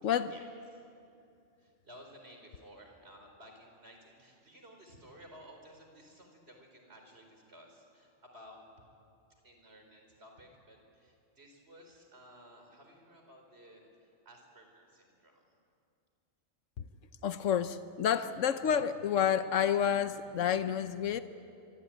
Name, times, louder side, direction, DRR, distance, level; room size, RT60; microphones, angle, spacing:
voice 1, 0.0-0.3 16.8-16.9 17.2-21.2, left 8 dB, 85° left, 11 dB, 1.2 m, -29 dB
voice 2, 1.6-8.7 9.4-15.4, equal, 55° right, 3 dB, 4.8 m, -55 dB
26.0 x 23.5 x 9.3 m, 2.5 s
omnidirectional pair, 1.3 m